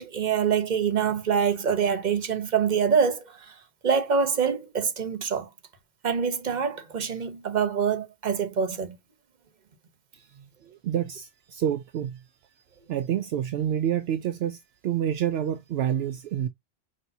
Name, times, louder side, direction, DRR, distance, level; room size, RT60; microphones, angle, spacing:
voice 1, 0.0-3.5 3.8-5.5 6.0-9.0, right 6 dB, 45° right, 1.1 m, -25 dB
voice 2, 10.8-12.2 12.9-16.5, right 10 dB, 75° right, 0.8 m, -28 dB
5.6 x 3.3 x 2.7 m
omnidirectional pair, 1.1 m